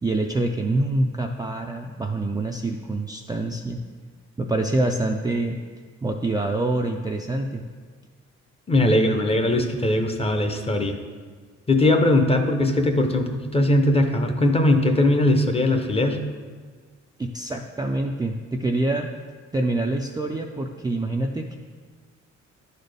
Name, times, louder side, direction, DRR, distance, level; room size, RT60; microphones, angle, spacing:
voice 1, 0.0-3.8 4.4-5.6 6.0-7.6 8.7-9.1 17.2-19.1 19.5-21.6, right 2 dB, 15° right, 1 dB, 0.4 m, -26 dB
voice 2, 8.7-11.0 11.7-16.2, left 1 dB, 20° left, 5 dB, 0.7 m, -20 dB
11.0 x 4.1 x 3.4 m, 1.5 s
cardioid pair, 90°, 30 cm